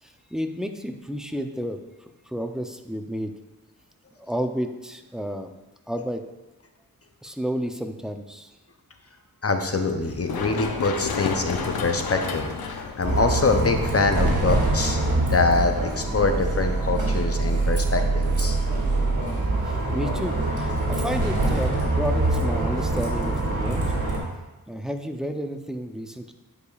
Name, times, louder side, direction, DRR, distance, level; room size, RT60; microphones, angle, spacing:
voice 1, 0.0-3.3 4.2-5.5 5.9-6.2 7.2-8.5 19.6-23.9 24.7-26.3, equal, ahead, 6 dB, 0.6 m, -31 dB
voice 2, 9.4-12.5 12.8-15.0 15.3-18.6, left 3 dB, 40° left, 6 dB, 0.7 m, -24 dB
Run, 10.0-17.5, left 5 dB, 80° left, 0.6 m, -34 dB
Bus, 13.0-24.2, right 2 dB, 55° right, 2.2 m, -24 dB
9.4 x 4.9 x 2.4 m, 1.1 s
cardioid pair, 45°, 36 cm